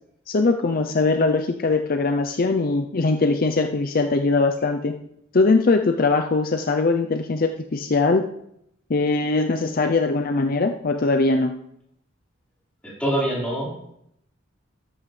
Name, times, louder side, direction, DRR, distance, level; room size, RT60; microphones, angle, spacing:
voice 1, 0.3-4.9 5.3-8.2 8.9-11.5, left 3 dB, 50° left, 6 dB, 0.6 m, -21 dB
voice 2, 12.8-13.9, right 1 dB, 5° left, -6 dB, 4.5 m, -25 dB
13.5 x 11.0 x 3.3 m, 0.76 s
head